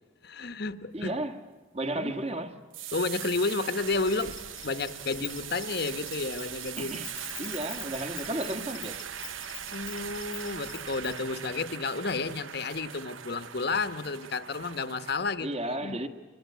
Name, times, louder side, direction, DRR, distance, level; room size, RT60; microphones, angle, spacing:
voice 1, 0.2-1.1 2.0-2.1 2.9-4.4 4.6-7.0 9.7-15.5 15.8-16.0, left 3 dB, 55° left, 1.2 m, -31 dB
voice 2, 0.9-1.4 1.7-2.5 6.8-7.1 7.4-9.0 15.4-16.1, right 1 dB, 35° right, 1.8 m, -33 dB
sound 1, 2.7-15.1, right 10 dB, 85° right, 0.8 m, -41 dB
Insect, 3.8-11.2, left 11 dB, 90° left, 2.1 m, -46 dB
26.0 x 24.0 x 9.3 m
head